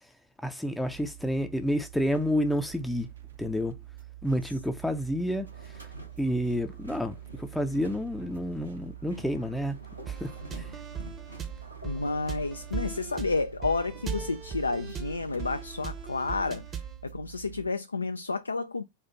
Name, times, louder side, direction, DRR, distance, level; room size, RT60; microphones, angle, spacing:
voice 1, 0.4-3.1 3.4-3.8 4.2-5.9 6.2-9.8 10.1-10.8, equal, 5° left, 0.5 m, -30 dB
sound 1, 0.8-17.7, right 14 dB, 65° right, 0.8 m, -46 dB
sound 2, 5.4-16.0, equal, 85° right, 1.4 m, -49 dB
sound 3, 10.1-17.0, right 6 dB, 25° right, 0.8 m, -39 dB
voice 2, 11.8-18.8, left 3 dB, 80° left, 0.3 m, -31 dB
4.5 x 2.4 x 4.0 m
figure-of-eight pair, 90°, 0 cm